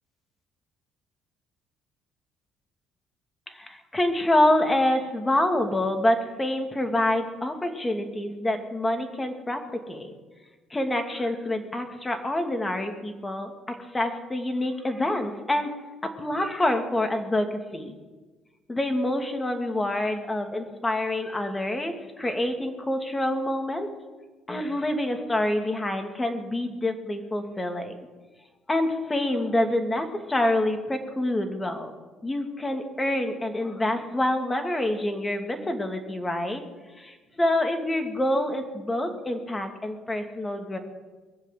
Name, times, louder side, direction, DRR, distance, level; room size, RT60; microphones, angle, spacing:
voice 1, 3.5-10.1 10.7-15.7 16.0-17.9 18.7-23.9 24.5-28.0 28.7-31.9 32.2-36.6 37.0-40.8, left 1 dB, 20° left, 5 dB, 2.6 m, -27 dB
22.5 x 7.5 x 7.6 m, 1.3 s
supercardioid pair, 75°, 0 cm